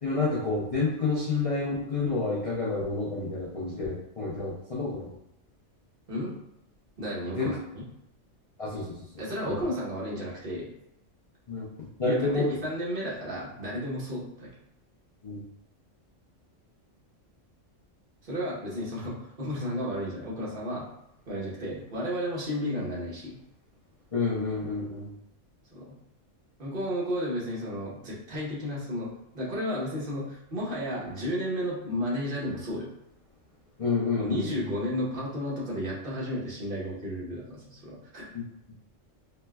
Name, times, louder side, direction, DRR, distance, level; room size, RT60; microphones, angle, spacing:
voice 1, 0.0-5.1 7.4-7.5 8.6-9.0 9.4-9.6 11.5-11.7 12.0-12.5 15.2-15.4 24.1-25.1 33.8-34.6 38.3-38.4, left 3 dB, 55° left, -6 dB, 0.3 m, -29 dB
voice 2, 7.0-7.8 9.2-10.7 12.0-14.5 18.2-20.9 21.3-23.4 25.7-26.0 26.6-32.9 34.2-38.3, equal, 45° right, -6 dB, 1.1 m, -33 dB
4.2 x 2.2 x 2.2 m, 0.81 s
omnidirectional pair, 1.3 m